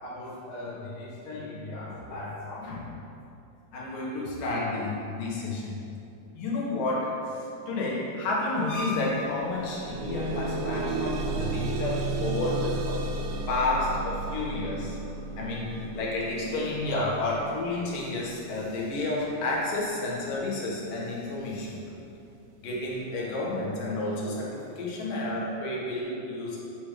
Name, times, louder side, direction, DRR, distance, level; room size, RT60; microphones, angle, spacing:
voice 1, 0.0-2.9 3.7-5.7 6.3-13.0 13.5-15.0 15.4-21.8 22.6-26.6, left 2 dB, 80° left, -5 dB, 3.2 m, -31 dB
sound 1, 8.7-8.9 9.2-20.2 21.0-21.1 21.6-21.7, right 3 dB, 80° right, 2.0 m, -34 dB
8.8 x 8.4 x 3.3 m, 2.8 s
omnidirectional pair, 3.8 m